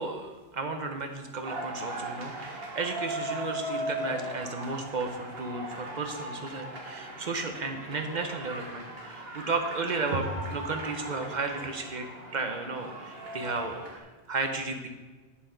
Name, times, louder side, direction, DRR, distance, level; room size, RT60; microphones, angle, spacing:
voice 1, 0.0-12.1 12.3-14.9, right 3 dB, 45° right, 5 dB, 1.0 m, -33 dB
sound 1, 1.4-14.0, right 1 dB, 65° right, 1.6 m, -38 dB
8.2 x 7.2 x 5.1 m, 1.3 s
omnidirectional pair, 1.1 m